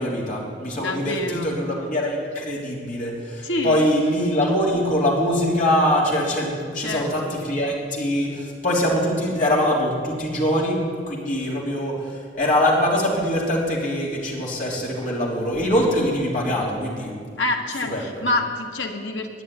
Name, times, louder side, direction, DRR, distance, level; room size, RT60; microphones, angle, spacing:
voice 1, 0.0-12.0 12.3-17.2 17.9-18.0, equal, 40° left, -4 dB, 3.2 m, -23 dB
voice 2, 0.7-1.5 3.4-3.9 6.8-7.3 17.4-19.4, left 2 dB, 75° left, 2 dB, 1.6 m, -27 dB
11.5 x 9.3 x 9.7 m, 2.1 s
head